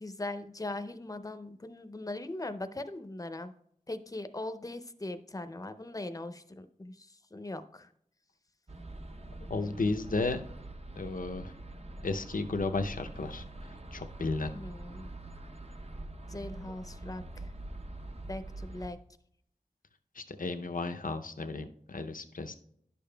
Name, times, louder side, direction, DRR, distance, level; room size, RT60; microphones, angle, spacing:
voice 1, 0.0-3.5 3.9-7.9 14.5-15.1 16.3-17.5 18.3-19.0, left 2 dB, 25° left, 10 dB, 0.5 m, -40 dB
sound 1, 8.7-18.9, right 2 dB, 50° right, 0.7 m, -44 dB
voice 2, 9.4-10.4 10.9-11.5 12.0-13.4 13.9-14.5 20.1-22.6, left 3 dB, 85° left, 8 dB, 0.6 m, -33 dB
10.5 x 6.8 x 2.2 m, 0.68 s
wide cardioid pair, 55°, 14 cm